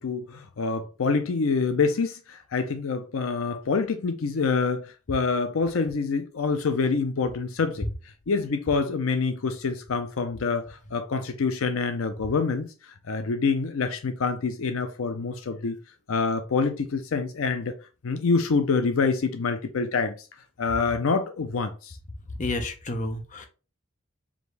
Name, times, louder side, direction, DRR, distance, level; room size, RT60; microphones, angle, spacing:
voice 1, 0.0-7.9 8.3-15.8 16.1-17.8 18.0-20.3 20.6-22.0, left 4 dB, 70° left, 0.5 m, -26 dB
voice 2, 22.4-23.5, left 2 dB, 35° left, 0.7 m, -30 dB
4.9 x 2.6 x 3.3 m
head